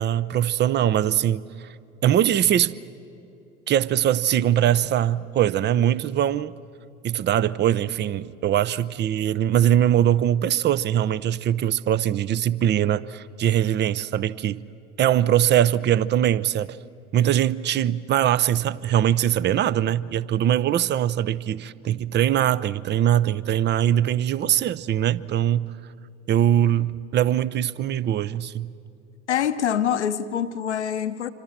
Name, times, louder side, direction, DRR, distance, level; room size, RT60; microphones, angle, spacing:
voice 1, 0.0-1.4 2.0-2.8 3.7-6.5 7.0-14.6 15.0-16.8 17.1-25.7 26.3-28.7, right 11 dB, 30° right, 0.7 m, -22 dB
voice 2, 29.3-31.3, left 9 dB, 80° left, 0.9 m, -25 dB
27.0 x 25.5 x 7.4 m
figure-of-eight pair, 65°, 34 cm